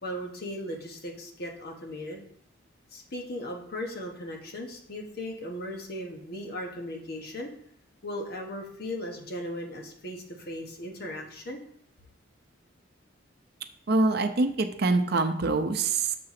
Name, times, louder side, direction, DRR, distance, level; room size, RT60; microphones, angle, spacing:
voice 1, 0.0-2.2 2.9-7.5 8.0-11.6, left 1 dB, 55° left, 1 dB, 1.3 m, -37 dB
voice 2, 13.9-16.2, right 3 dB, 55° right, 8 dB, 0.6 m, -25 dB
6.7 x 3.8 x 5.8 m, 0.66 s
head